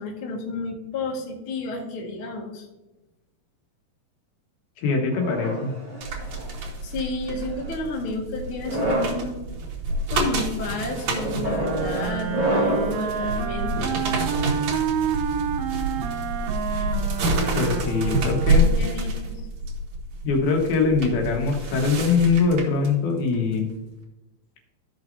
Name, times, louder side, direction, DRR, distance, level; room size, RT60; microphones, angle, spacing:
voice 1, 0.0-2.7 6.8-9.4 10.1-14.7 18.6-19.4, left 2 dB, 45° left, -1 dB, 1.9 m, -31 dB
voice 2, 4.8-5.7 17.5-18.7 20.2-23.7, left 4 dB, 75° left, 1 dB, 3.3 m, -22 dB
sound 1, 5.1-6.5 7.3-7.7 8.5-9.2 9.9-10.2 11.2-13.0, right 1 dB, 30° right, 0.9 m, -27 dB
sound 2, 6.0-22.9 23.3-23.5, right 1 dB, 55° right, 2.2 m, -28 dB
Wind instrument woodwind instrument, 11.5-18.9, right 8 dB, 80° right, 2.4 m, -29 dB
14.5 x 5.9 x 2.6 m, 1.0 s
omnidirectional pair, 4.4 m